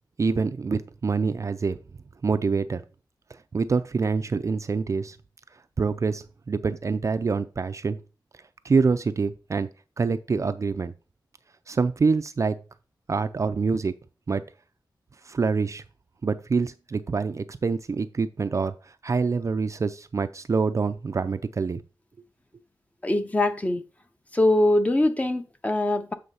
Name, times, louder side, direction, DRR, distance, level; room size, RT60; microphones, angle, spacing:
voice 1, 0.2-1.8 2.2-2.8 3.5-5.2 5.8-8.0 8.6-9.7 10.0-10.9 11.7-12.6 13.1-13.9 14.3-14.4 15.3-15.8 16.2-21.8, right 4 dB, 40° right, 0.4 m, -26 dB
voice 2, 23.0-23.8 24.3-26.1, left 1 dB, 20° left, 0.7 m, -22 dB
7.8 x 3.2 x 5.4 m
wide cardioid pair, 140°, 8 cm